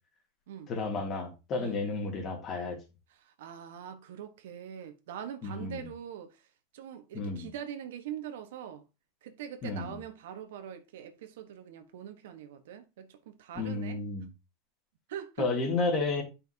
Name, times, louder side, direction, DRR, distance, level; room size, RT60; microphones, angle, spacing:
voice 1, 0.7-2.8 5.4-5.9 7.1-7.5 9.6-10.0 13.5-14.3 15.4-16.2, left 3 dB, 35° left, 2.5 m, -32 dB
voice 2, 3.2-6.5 6.7-8.8 9.2-14.0 15.1-15.5, right 9 dB, 80° right, 1.2 m, -43 dB
9.4 x 5.7 x 2.8 m
supercardioid pair, 130°, 0 cm